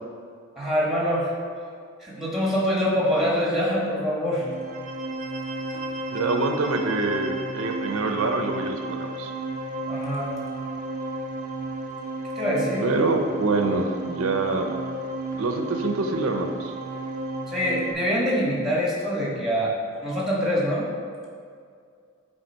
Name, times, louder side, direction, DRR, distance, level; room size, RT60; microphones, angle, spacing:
voice 1, 0.6-1.3 2.0-4.4 9.9-10.3 12.4-12.9 17.5-19.7 20.0-20.9, equal, ahead, -5 dB, 1.5 m, -24 dB
sound 1, 4.4-17.9, right 2 dB, 40° right, 0.4 m, -33 dB
voice 2, 6.1-9.3 12.8-14.7 15.4-16.7, right 3 dB, 85° right, 5 dB, 0.6 m, -25 dB
8.0 x 3.3 x 4.5 m, 2.2 s
head